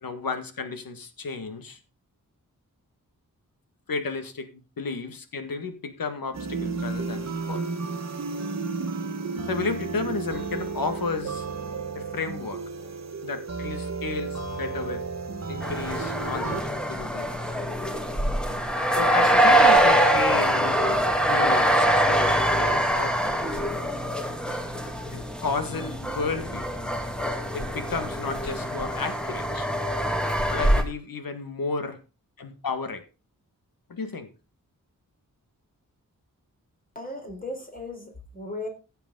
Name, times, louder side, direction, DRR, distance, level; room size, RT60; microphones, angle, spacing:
voice 1, 0.0-1.8 3.9-7.7 9.5-11.5 12.0-12.6 13.2-15.0 15.5-17.3 18.9-21.0 21.3-23.6 25.1-26.7 27.5-29.7 30.5-32.0 32.4-33.0 33.9-34.3, left 4 dB, 85° left, 8 dB, 1.8 m, -33 dB
sound 1, 6.3-16.6, right 4 dB, 50° right, 1.4 m, -32 dB
sound 2, 15.6-30.8, right 1 dB, 5° left, 1.7 m, -24 dB
voice 2, 37.0-38.7, left 2 dB, 25° left, 3 dB, 3.9 m, -36 dB
15.5 x 6.8 x 3.8 m, 0.31 s
wide cardioid pair, 125°, 34 cm